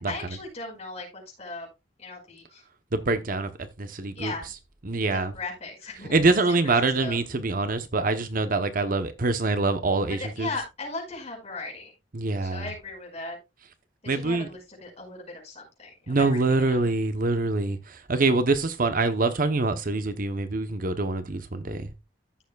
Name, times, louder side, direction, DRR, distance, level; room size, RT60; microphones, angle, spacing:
voice 1, 0.1-1.7 2.0-2.6 4.1-4.5 5.1-6.2 6.5-7.2 10.2-11.9 12.4-13.4 14.0-16.8, left 3 dB, 35° left, 5.2 m, -38 dB
voice 2, 2.9-3.5 3.8-4.3 4.8-5.3 6.1-10.5 12.1-12.7 14.1-14.5 16.1-21.9, right 3 dB, 50° right, 0.9 m, -25 dB
14.5 x 7.0 x 2.3 m
head